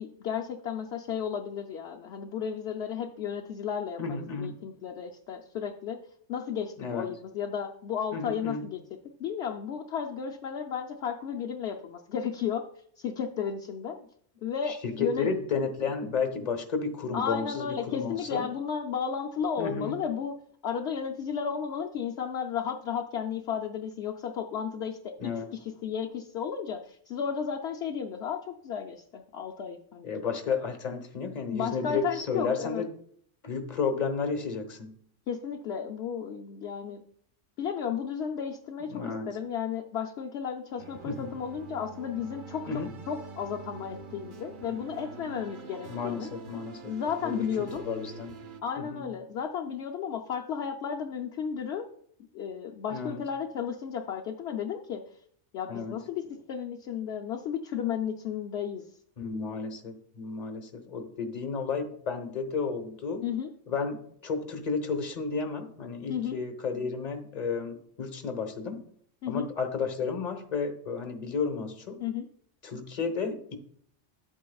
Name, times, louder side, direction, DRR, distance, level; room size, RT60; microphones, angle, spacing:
voice 1, 0.0-4.0 4.4-6.0 6.3-8.8 9.2-12.6 13.0-14.0 14.4-15.3 17.1-20.3 20.6-25.3 25.6-30.1 31.5-32.8 35.3-37.0 37.6-42.6 43.1-46.3 46.9-47.8 48.6-51.9 52.3-55.0 55.5-58.8 63.2-63.5 66.1-66.4 69.2-69.5 72.0-72.3, left 7 dB, 65° left, 2 dB, 0.8 m, -33 dB
voice 2, 4.0-4.6 6.8-7.1 8.1-8.7 14.7-18.5 19.6-20.0 25.2-25.5 30.0-32.9 33.4-34.9 38.9-39.4 41.0-41.3 42.7-42.9 45.9-46.9 47.2-47.5 47.8-48.3 48.8-49.1 52.9-53.2 55.7-56.0 59.2-63.3 63.7-68.8 69.3-72.0 72.6-73.6, left 5 dB, 35° left, 5 dB, 1.1 m, -32 dB
sound 1, 40.8-48.6, right 4 dB, 50° right, 0.8 m, -45 dB
11.5 x 8.4 x 2.3 m, 0.66 s
omnidirectional pair, 1.3 m